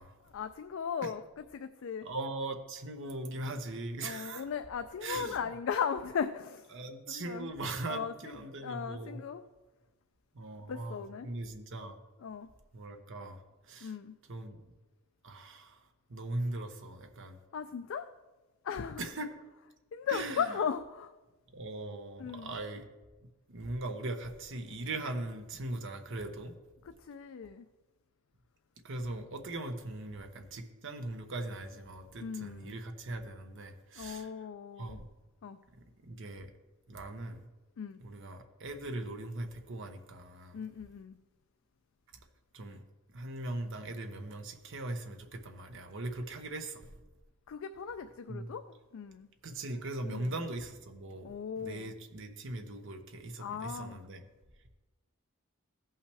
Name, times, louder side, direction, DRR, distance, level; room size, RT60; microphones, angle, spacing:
voice 1, 0.2-2.1 4.0-6.8 7.1-7.5 7.8-9.4 10.7-11.3 12.2-12.5 13.8-14.2 17.5-18.1 18.6-19.0 19.9-21.1 22.2-22.6 26.8-27.7 32.2-32.8 34.0-35.0 35.4-35.6 37.8-38.0 40.5-41.2 47.5-49.3 50.0-50.4 51.2-51.9 53.4-54.0, left 7 dB, 65° left, 10 dB, 0.4 m, -37 dB
voice 2, 2.0-4.4 5.0-5.4 6.7-9.2 10.3-12.0 12.7-13.4 13.7-13.9 14.3-14.6 15.2-15.8 16.1-17.4 19.0-19.3 20.1-20.4 21.5-22.9 23.5-26.5 28.8-34.3 34.8-35.0 36.0-36.5 36.9-37.4 38.0-40.6 42.5-42.8 43.1-46.8 48.3-48.5 49.4-54.2, right 2 dB, 60° right, 6 dB, 0.9 m, -40 dB
15.5 x 5.6 x 3.4 m, 1.1 s
head